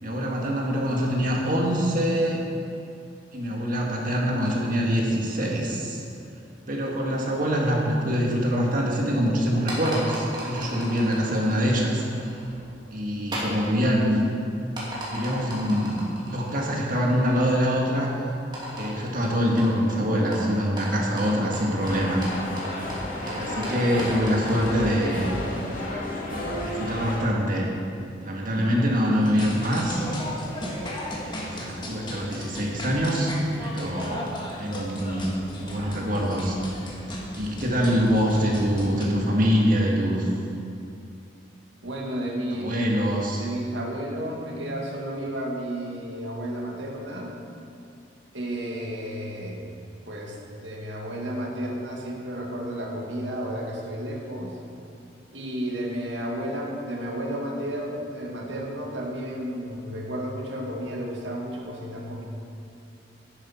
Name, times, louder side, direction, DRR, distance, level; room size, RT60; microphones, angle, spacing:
voice 1, 0.0-2.4 3.3-6.0 6.7-12.0 12.9-14.3 15.1-18.1 18.7-22.2 23.2-25.4 26.6-27.7 28.2-30.1 31.2-33.3 33.6-36.6 37.4-40.3 42.6-43.4, equal, 50° right, -2 dB, 1.8 m, -24 dB
sound 1, 9.5-25.9, equal, 25° right, 2.6 m, -38 dB
sound 2, 21.8-27.2, left 1 dB, 50° left, 2.0 m, -32 dB
voice 2, 23.2-23.7 41.8-42.9 43.4-47.4 48.3-49.7 50.1-54.6 55.3-62.3, equal, 85° right, -1 dB, 1.8 m, -32 dB
sound 3, 29.2-39.0, left 1 dB, 25° left, 1.5 m, -36 dB
11.0 x 9.9 x 4.4 m, 2.5 s
head